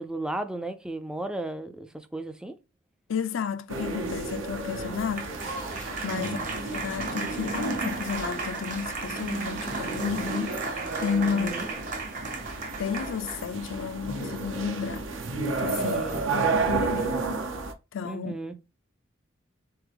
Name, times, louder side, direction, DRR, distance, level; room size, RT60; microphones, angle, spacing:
voice 1, 0.0-2.6 6.1-6.4 11.2-11.7 15.8-16.2 18.0-18.5, right 2 dB, 5° right, 0.3 m, -35 dB
voice 2, 3.1-6.4 6.7-11.5 12.8-15.0 15.6-16.0 16.3-17.2 17.9-18.3, left 7 dB, 80° left, 0.4 m, -32 dB
sound 1, 3.7-17.7, right 3 dB, 80° right, 0.8 m, -32 dB
Applause, 4.3-13.5, right 3 dB, 40° right, 0.9 m, -36 dB
3.9 x 3.4 x 3.4 m
head